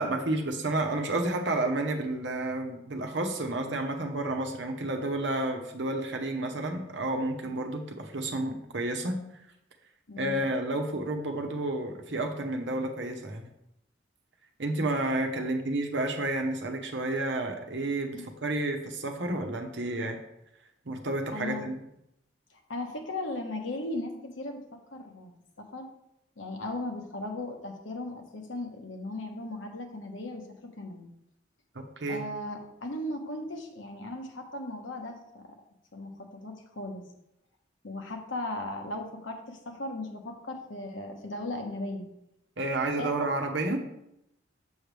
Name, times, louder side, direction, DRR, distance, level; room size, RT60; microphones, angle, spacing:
voice 1, 0.0-9.2 10.2-13.5 14.6-20.2 20.8-21.8 31.7-32.2 42.6-43.8, right 2 dB, 70° right, 4 dB, 1.0 m, -31 dB
voice 2, 10.1-10.4 18.1-18.3 21.3-21.7 22.5-25.3 25.6-25.9 26.4-31.1 32.1-35.5 35.9-37.0 37.8-42.1 43.0-43.1, left 1 dB, 90° left, 3 dB, 1.2 m, -37 dB
7.0 x 6.6 x 3.4 m, 0.82 s
head